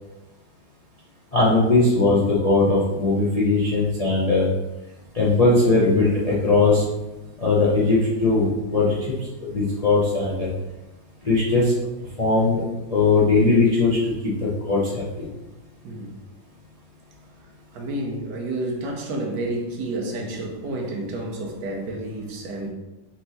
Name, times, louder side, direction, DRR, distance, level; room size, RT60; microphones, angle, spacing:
voice 1, 1.3-4.4 5.1-6.8 7.4-9.1 9.4-10.5 11.2-11.7 12.2-12.6 12.9-15.3, left 3 dB, 55° left, -7 dB, 0.4 m, -19 dB
voice 2, 17.7-22.7, right 1 dB, 70° right, 0 dB, 1.3 m, -30 dB
4.4 x 3.0 x 4.0 m, 1.0 s
omnidirectional pair, 2.0 m